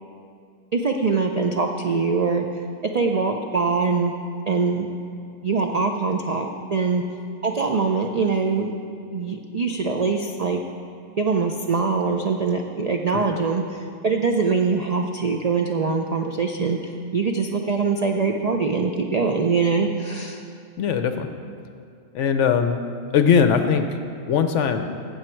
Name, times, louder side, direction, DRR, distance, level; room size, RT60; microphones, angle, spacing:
voice 1, 0.7-2.4 2.9-4.1 4.5-4.9 5.4-7.0 7.4-8.7 9.1-10.6 11.2-20.4, right 4 dB, 80° right, 3 dB, 0.3 m, -23 dB
voice 2, 20.8-21.3 22.1-22.8 23.1-23.9 24.3-24.9, left 7 dB, 65° left, 7 dB, 0.9 m, -19 dB
15.5 x 7.3 x 4.5 m, 2.4 s
omnidirectional pair, 1.4 m